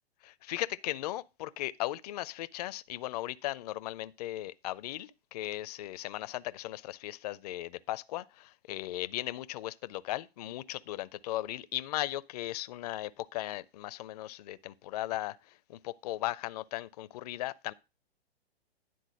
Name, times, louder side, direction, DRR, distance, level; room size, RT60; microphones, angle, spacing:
voice 1, 0.5-17.7, left 15 dB, 40° left, 0.4 m, -37 dB
10.0 x 3.9 x 6.2 m
hypercardioid pair, 130°, 32 cm